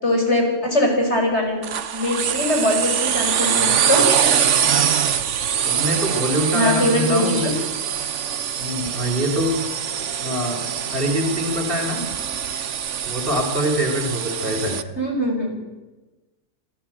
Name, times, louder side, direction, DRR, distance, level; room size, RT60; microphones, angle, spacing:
voice 1, 0.0-1.6 1.9-4.1 6.5-7.6 15.0-15.6, left 1 dB, 45° left, 2 dB, 6.4 m, -21 dB
sound 1, 1.6-14.8, right 8 dB, 55° right, 1.2 m, -23 dB
voice 2, 5.6-7.5 8.6-9.7 10.2-10.6 10.9-12.0 13.0-14.8, equal, 35° right, 3 dB, 4.2 m, -24 dB
25.5 x 17.0 x 8.9 m, 1.1 s
omnidirectional pair, 1.6 m